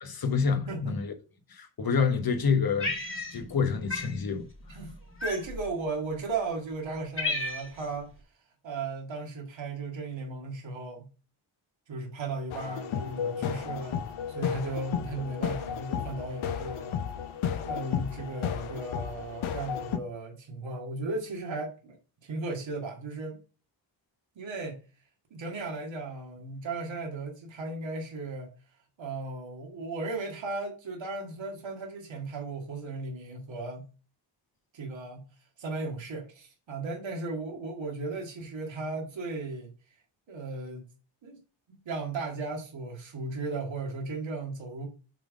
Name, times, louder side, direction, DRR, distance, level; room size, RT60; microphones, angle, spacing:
voice 1, 0.0-1.1 1.5-4.8, left 5 dB, 50° left, 1.3 m, -28 dB
voice 2, 0.5-1.0 4.7-4.9 5.2-8.1 8.6-11.1 11.9-14.0 14.3-17.0 17.5-22.0 22.2-23.4 24.4-24.8 25.3-28.5 29.0-33.9 34.7-35.2 35.6-39.7 40.3-40.9 41.2-41.4 41.7-44.9, right 3 dB, 70° right, 2.0 m, -36 dB
Cat, 2.8-3.6 3.9-4.1 5.2-5.7 6.4-6.5 6.8-7.9, left 2 dB, 25° left, 1.9 m, -32 dB
sound 1, 12.5-20.0, left 8 dB, 85° left, 0.8 m, -33 dB
5.9 x 3.6 x 5.0 m
cardioid pair, 60°, 47 cm